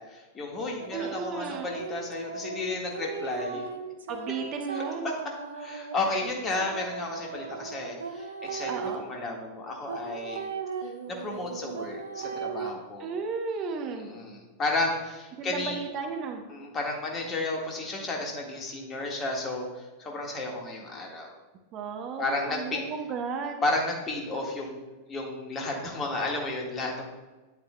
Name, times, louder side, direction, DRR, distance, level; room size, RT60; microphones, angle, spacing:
voice 1, 0.0-3.6 4.7-5.1 5.5-10.4 11.1-13.1 13.9-15.8 16.5-21.3 22.2-22.8 23.6-24.8 25.1-27.1, left 2 dB, 25° left, 0 dB, 1.7 m, -32 dB
sound 1, 0.8-8.9 9.9-12.7, right 5 dB, 70° right, 0.7 m, -37 dB
voice 2, 0.9-1.7 4.1-5.1 8.7-9.0 13.0-14.1 15.4-16.4 21.7-23.5, right 5 dB, 35° right, 4 dB, 0.9 m, -34 dB
9.3 x 8.7 x 2.2 m, 1.2 s
figure-of-eight pair, 90°, 0 cm